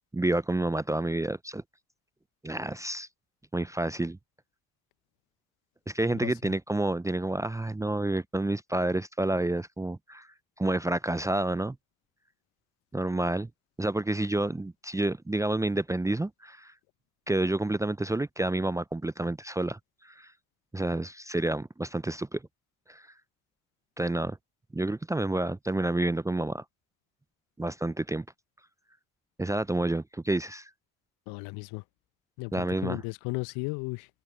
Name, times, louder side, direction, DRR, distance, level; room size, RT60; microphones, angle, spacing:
voice 1, 0.1-1.6 2.4-3.1 3.5-4.2 5.9-10.3 10.6-11.8 12.9-13.5 13.8-16.7 17.3-19.8 20.0-20.3 20.7-22.4 22.9-23.1 24.0-24.4 24.7-26.6 27.6-28.2 29.4-30.7 32.5-33.0, right 2 dB, 5° right, 0.8 m, -29 dB
voice 2, 31.3-31.8 32.4-34.1, left 29 dB, 55° left, 1.5 m, -35 dB
figure-of-eight pair, 55°, 43 cm